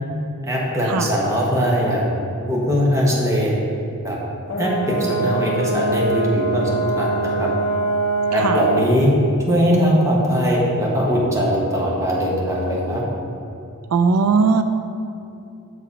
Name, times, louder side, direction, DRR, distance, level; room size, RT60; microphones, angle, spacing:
voice 1, 0.4-2.1 2.5-3.5 4.0-4.2 4.6-7.5 8.3-9.1 9.5-13.0, equal, 15° right, -4 dB, 1.1 m, -20 dB
Brass instrument, 4.5-9.0, right 3 dB, 80° left, 0.7 m, -23 dB
voice 2, 13.9-14.6, right 5 dB, 85° right, 9 dB, 0.4 m, -18 dB
6.7 x 4.8 x 4.9 m, 2.7 s
head